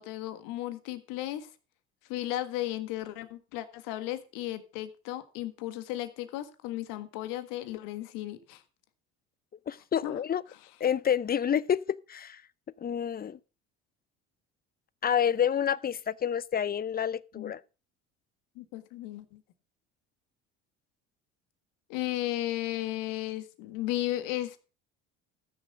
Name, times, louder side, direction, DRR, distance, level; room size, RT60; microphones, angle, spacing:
voice 1, 0.0-1.5 2.1-8.6 10.0-10.2 17.3-17.5 18.5-19.4 21.9-24.6, left 15 dB, 75° left, 1.7 m, -35 dB
voice 2, 9.7-10.4 10.8-12.4 12.8-13.4 15.0-17.6, left 8 dB, 30° left, 0.6 m, -28 dB
14.5 x 6.7 x 5.2 m
supercardioid pair, 80°, 33 cm